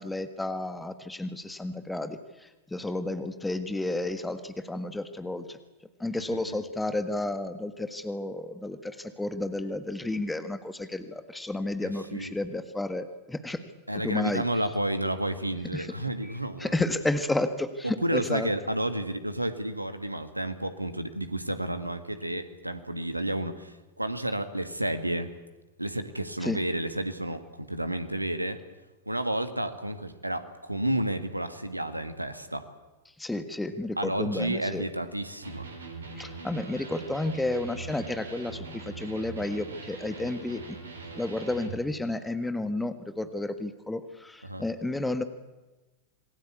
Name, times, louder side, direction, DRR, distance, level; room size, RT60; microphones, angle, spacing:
voice 1, 0.0-5.6 6.0-13.6 14.0-14.4 15.7-15.9 16.2-18.5 26.4-26.6 33.2-34.8 36.2-40.8 41.1-45.2, left 2 dB, 5° left, 10 dB, 1.6 m, -32 dB
voice 2, 11.8-12.3 13.9-16.8 17.8-25.3 25.8-28.6 29.1-32.6 34.0-35.7 44.4-44.6, right 1 dB, 85° right, 10 dB, 1.9 m, -31 dB
Electric guitar, 35.4-41.8, right 4 dB, 70° right, 4.8 m, -42 dB
27.0 x 20.5 x 8.3 m, 1.1 s
figure-of-eight pair, 90°, 0 cm